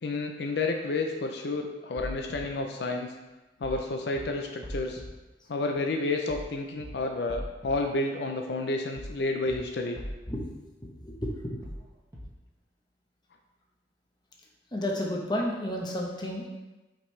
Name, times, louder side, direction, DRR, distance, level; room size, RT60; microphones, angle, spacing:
voice 1, 0.0-3.1 3.6-5.0 5.5-10.0, left 2 dB, 70° left, 3 dB, 0.5 m, -30 dB
sound 1, 2.0-2.4 3.6-3.8 4.1-4.2 4.6-5.1 6.3-6.5 6.8-6.9 7.3-7.7 9.0-9.2 9.5-9.6 10.0-10.4 11.6-11.8 12.1-12.2, equal, 20° right, 1.0 m, -39 dB
voice 2, 10.8-11.6 14.7-16.4, left 1 dB, 25° left, -1 dB, 0.8 m, -32 dB
5.9 x 5.2 x 3.1 m, 1.1 s
head